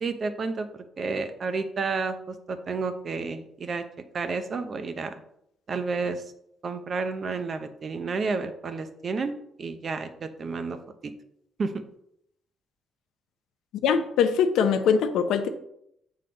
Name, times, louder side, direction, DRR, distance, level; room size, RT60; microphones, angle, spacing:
voice 1, 0.0-3.8 4.1-5.1 5.7-6.2 6.6-9.3 9.6-10.8 11.6-11.7, right 4 dB, 45° right, 8 dB, 0.9 m, -31 dB
voice 2, 13.8-15.5, left 7 dB, 85° left, 9 dB, 0.7 m, -22 dB
7.8 x 4.1 x 5.2 m, 0.74 s
cardioid pair, 90°, 0 cm